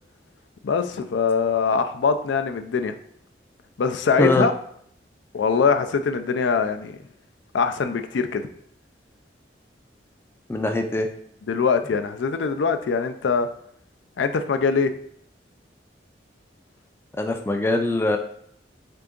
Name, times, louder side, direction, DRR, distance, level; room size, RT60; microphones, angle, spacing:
voice 1, 0.6-2.9 3.8-4.5 5.3-7.0 7.5-8.4 11.5-13.5 14.2-14.9, left 5 dB, 90° left, 9 dB, 0.4 m, -22 dB
voice 2, 10.5-11.1 17.2-18.2, left 2 dB, 15° left, 5 dB, 0.3 m, -22 dB
3.8 x 3.4 x 3.7 m, 0.67 s
head